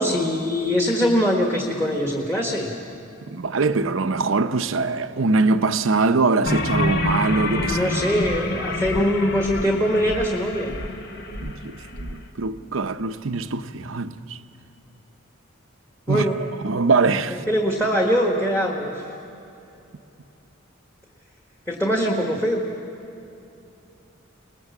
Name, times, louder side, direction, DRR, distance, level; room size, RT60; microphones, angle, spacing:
voice 1, 0.0-2.7 7.6-10.8 16.1-16.4 17.3-19.1 21.7-22.6, equal, 10° left, 1.5 m, -22 dB
voice 2, 3.3-7.9 11.4-14.4 16.1-16.3 16.6-17.4, right 3 dB, 75° right, 0.8 m, -23 dB
sound 1, 6.5-12.1, left 2 dB, 50° left, 1.4 m, -27 dB
24.0 x 20.0 x 7.2 m
head